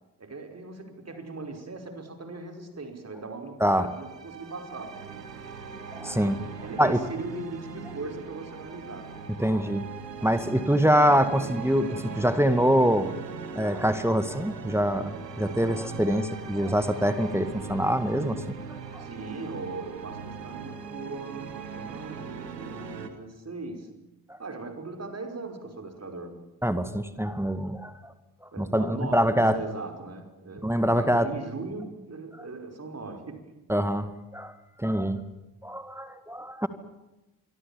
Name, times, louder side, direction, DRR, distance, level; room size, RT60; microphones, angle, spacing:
voice 1, 0.2-5.0 6.6-9.1 19.0-23.9 24.4-26.4 28.5-33.4, right 3 dB, 30° right, 4 dB, 5.4 m, -39 dB
voice 2, 3.6-3.9 5.9-6.4 6.8-7.0 9.4-9.9 10.2-13.1 13.5-18.4 18.9-19.0 26.6-28.1 28.6-29.6 30.6-31.3 33.7-34.5 34.8-35.2 35.6-36.7, equal, 5° right, 11 dB, 2.1 m, -24 dB
sound 1, 3.8-23.1, right 6 dB, 85° right, 1.6 m, -40 dB
26.0 x 23.5 x 7.3 m, 1.0 s
figure-of-eight pair, 40°, 48 cm